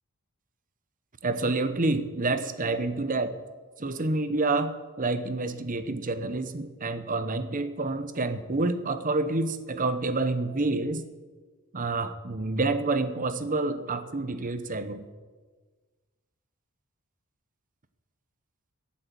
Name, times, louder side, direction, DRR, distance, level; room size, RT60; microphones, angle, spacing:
voice 1, 1.2-3.3 3.8-11.0 11.7-15.1, right 2 dB, 35° right, 11 dB, 1.0 m, -28 dB
15.0 x 8.6 x 7.6 m, 1.4 s
head